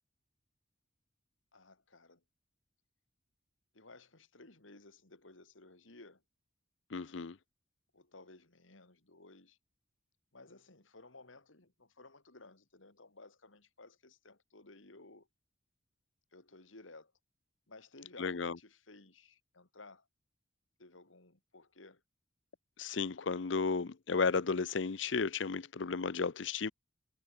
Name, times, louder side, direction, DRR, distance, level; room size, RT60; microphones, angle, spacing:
voice 1, 1.5-2.2 3.7-6.2 7.9-9.6 10.3-15.3 16.3-17.1 17.7-20.1 20.8-22.0 23.7-23.9, left 2 dB, 85° left, 3.1 m, -57 dB
voice 2, 6.9-7.4 18.2-18.6 22.8-26.7, left 4 dB, 65° left, 0.7 m, -33 dB
head